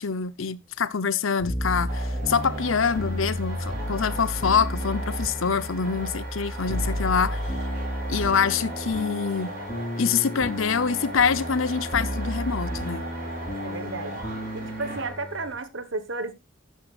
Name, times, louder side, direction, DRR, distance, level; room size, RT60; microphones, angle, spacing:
voice 1, 0.0-7.4 8.1-9.5 10.0-13.0, left 6 dB, 80° left, 0.7 m, -25 dB
sound 1, 1.4-15.5, equal, 35° left, 3.5 m, -32 dB
sound 2, 1.9-15.1, right 2 dB, 45° right, 5.1 m, -38 dB
Wind instrument woodwind instrument, 3.8-15.6, left 1 dB, 5° left, 1.5 m, -47 dB
voice 2, 13.6-14.2 14.5-16.3, right 3 dB, 70° right, 1.4 m, -33 dB
12.5 x 9.4 x 2.4 m
head